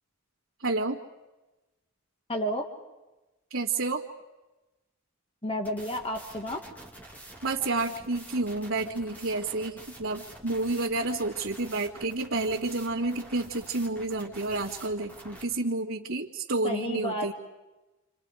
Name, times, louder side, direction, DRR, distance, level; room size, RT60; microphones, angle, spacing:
voice 1, 0.6-1.0 3.5-4.0 7.4-17.3, right 2 dB, 75° right, -5 dB, 2.2 m, -30 dB
voice 2, 2.3-2.6 5.4-6.6 16.6-17.3, equal, 25° left, 4 dB, 1.9 m, -31 dB
sound 1, 5.6-15.4, right 1 dB, 10° left, 3.2 m, -47 dB
29.0 x 27.5 x 5.0 m, 1.1 s
head